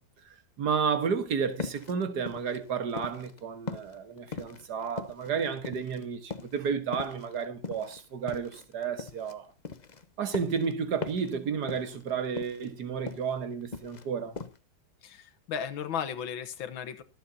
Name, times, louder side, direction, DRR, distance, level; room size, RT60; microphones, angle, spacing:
voice 1, 0.6-9.5 10.2-14.4, right 6 dB, 60° right, 1.9 m, -32 dB
sound 1, 1.6-3.4 3.7-6.0 6.3-6.6 6.9-9.3 9.6-10.7 11.0-11.4 11.6-12.1 12.3-13.3 13.6-14.1 14.4-14.6, left 4 dB, 40° left, 0.6 m, -40 dB
voice 2, 15.0-17.0, left 7 dB, 85° left, 2.0 m, -35 dB
23.5 x 8.0 x 2.8 m
omnidirectional pair, 2.1 m